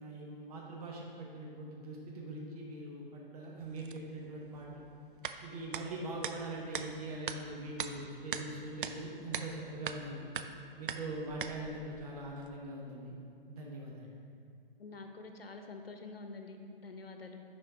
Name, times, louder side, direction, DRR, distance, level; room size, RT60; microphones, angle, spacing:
voice 1, 0.0-4.8 5.4-10.3 10.8-13.2 13.5-14.1, right 1 dB, 40° right, -2 dB, 1.1 m, -42 dB
sound 1, 3.6-12.6, right 6 dB, 60° right, 0.5 m, -43 dB
voice 2, 14.8-17.4, left 3 dB, 80° left, 5 dB, 0.9 m, -47 dB
10.5 x 4.4 x 3.7 m, 2.4 s
figure-of-eight pair, 135°, 29 cm